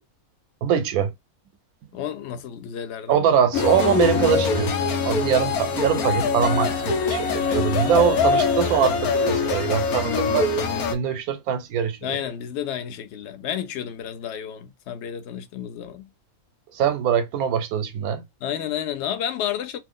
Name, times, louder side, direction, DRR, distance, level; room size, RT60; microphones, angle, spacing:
voice 1, 0.6-1.1 3.1-4.7 5.0-10.5 10.9-12.2 16.7-18.2, right 8 dB, 80° right, 1.1 m, -23 dB
voice 2, 1.9-3.2 12.0-16.1 18.4-19.8, left 9 dB, 60° left, 0.8 m, -31 dB
sound 1, 3.5-11.0, left 5 dB, 85° left, 1.2 m, -23 dB
2.9 x 2.0 x 3.6 m
omnidirectional pair, 1.5 m